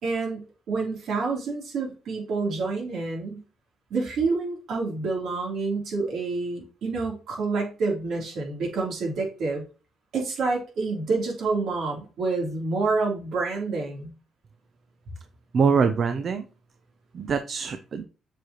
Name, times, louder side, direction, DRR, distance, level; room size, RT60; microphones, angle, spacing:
voice 1, 0.0-3.4 3.9-9.6 10.1-14.1, right 3 dB, 75° right, -1 dB, 3.1 m, -28 dB
voice 2, 15.5-16.4 17.1-18.0, right 5 dB, 50° right, 9 dB, 0.6 m, -23 dB
7.5 x 4.9 x 2.9 m, 0.33 s
cardioid pair, 90°, 0 cm